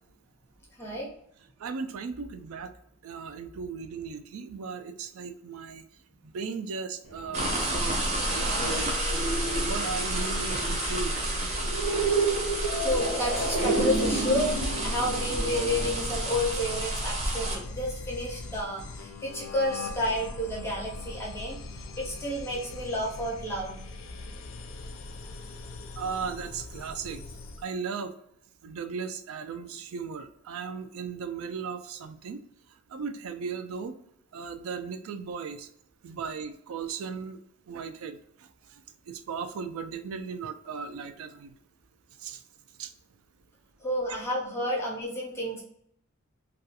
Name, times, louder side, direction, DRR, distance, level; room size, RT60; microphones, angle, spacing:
voice 1, 1.6-2.7 3.0-5.8 6.3-7.5 7.7-8.1 8.3-9.0 9.5-11.5 26.0-27.2 27.6-28.1 28.6-32.4 32.9-33.9 34.3-35.7 36.0-37.4 37.7-38.2 39.1-41.5 42.2-42.4 42.8-42.9, right 5 dB, 70° right, 9 dB, 0.3 m, -36 dB
sound 1, 7.0-16.8, right 3 dB, 90° right, 0.8 m, -32 dB
sound 2, 7.3-17.6, right 1 dB, 30° right, 0.6 m, -30 dB
voice 2, 12.8-14.5 14.8-23.8 43.8-45.6, left 1 dB, 10° left, -3 dB, 0.5 m, -30 dB
sound 3, 13.3-27.7, left 3 dB, 70° left, 0.4 m, -41 dB
2.3 x 2.3 x 2.8 m, 0.70 s
head